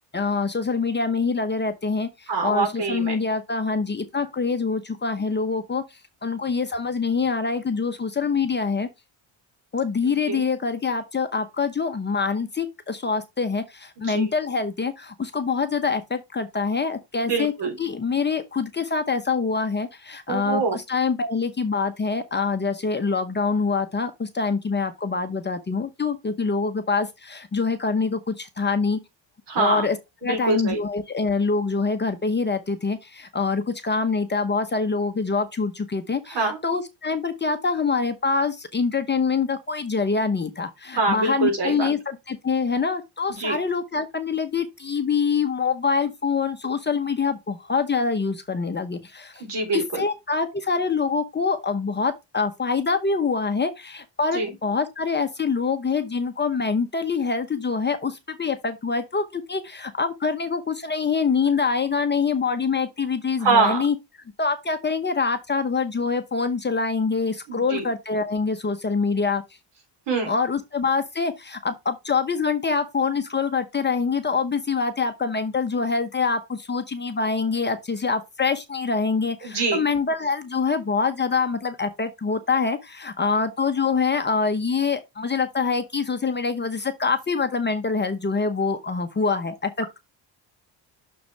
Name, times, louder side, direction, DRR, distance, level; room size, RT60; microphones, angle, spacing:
voice 1, 0.1-5.8 6.2-8.9 9.7-17.5 17.8-29.0 29.6-30.0 30.2-49.4 49.7-63.9 64.4-69.4 70.2-90.0, left 4 dB, 25° left, 0.9 m, -25 dB
voice 2, 2.3-3.1 10.1-10.4 14.1-14.3 17.3-17.8 20.3-20.8 29.5-29.9 30.2-30.8 36.3-36.6 41.0-41.9 43.3-43.6 49.4-50.0 54.3-54.5 63.4-63.8 67.5-67.9 70.1-70.3 79.4-79.8, right 4 dB, 65° right, 3.5 m, -24 dB
6.8 x 6.5 x 3.3 m
cardioid pair, 135°, 45 cm